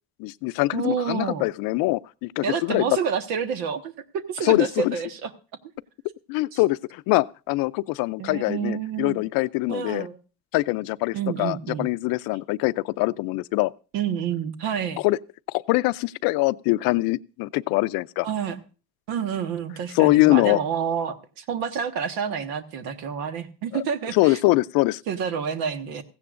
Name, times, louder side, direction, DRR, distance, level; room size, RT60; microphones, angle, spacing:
voice 1, 0.2-2.8 4.4-5.0 6.3-10.1 10.5-13.7 15.0-15.2 15.5-18.3 19.9-20.6 23.7-23.8 24.1-25.0, left 20 dB, 75° left, 0.6 m, -23 dB
voice 2, 0.7-1.4 2.4-5.3 6.5-6.6 8.2-9.2 9.7-10.2 11.1-11.9 13.9-15.0 18.2-18.6 19.1-24.4 25.1-26.0, right 7 dB, 85° right, 1.5 m, -29 dB
16.5 x 15.5 x 2.5 m
cardioid pair, 125°, 34 cm